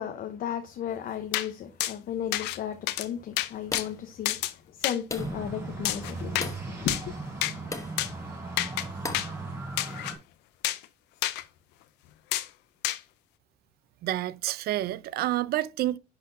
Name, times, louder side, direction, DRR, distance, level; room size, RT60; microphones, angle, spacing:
voice 1, 0.0-7.1, left 9 dB, 60° left, 0.8 m, -35 dB
sound 1, 1.3-1.5 1.8-1.9 2.3-2.6 2.9-3.1 3.4-3.9 4.2-4.5 4.8-5.0 5.8-6.5 6.9-7.1 7.4-7.5 8.0-8.1 8.6-8.9 9.1-9.3 9.8-10.1 10.6-10.8 11.2-11.4 12.3-12.5 12.8-13.0, left 15 dB, 90° left, 0.6 m, -29 dB
sound 2, 3.7-4.1 5.1-5.5 6.4-6.7 7.7-8.0 9.0-9.4, left 3 dB, 20° left, 1.0 m, -37 dB
sound 3, 5.1-10.2, right 2 dB, 15° right, 4.5 m, -37 dB
voice 2, 14.0-16.0, right 14 dB, 70° right, 0.5 m, -29 dB
10.5 x 4.2 x 2.6 m
cardioid pair, 110°, 17 cm